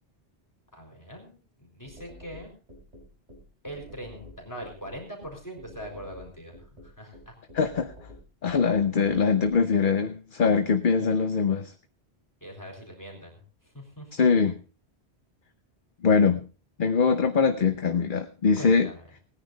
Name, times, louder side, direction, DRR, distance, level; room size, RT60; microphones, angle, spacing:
voice 1, 0.7-2.5 3.6-6.6 6.8-7.4 12.4-13.4 13.7-14.3 18.6-19.0, equal, 15° left, 1 dB, 4.1 m, -42 dB
sound 1, 1.9-9.5, left 1 dB, 90° right, 4.4 m, -48 dB
voice 2, 7.5-7.9 8.4-11.7 14.1-14.6 16.0-16.4 16.8-18.9, left 5 dB, 50° left, 8 dB, 1.0 m, -22 dB
19.5 x 10.0 x 4.0 m, 0.36 s
omnidirectional pair, 1.1 m